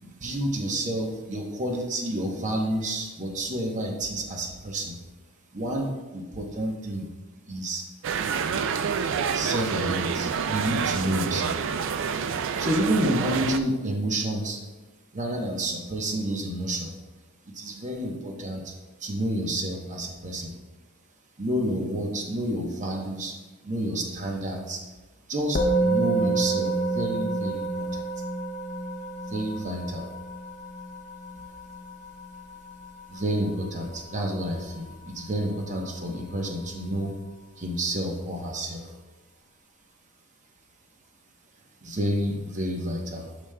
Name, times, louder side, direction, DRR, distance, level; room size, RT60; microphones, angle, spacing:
voice 1, 0.0-5.0 5.5-7.1 7.5-7.8 9.3-11.6 12.6-14.6 15.1-16.9 17.5-18.7 19.0-20.5 21.4-23.3 23.6-24.8 25.3-28.1 29.3-30.1 33.1-37.1 37.6-38.9 41.8-43.3, right 1 dB, 35° right, 1 dB, 0.9 m, -29 dB
sound 1, 8.0-13.6, right 6 dB, 60° right, 0.3 m, -28 dB
Musical instrument, 25.6-35.1, right 2 dB, 40° left, 0.6 m, -29 dB
11.0 x 5.0 x 2.2 m, 1.2 s
head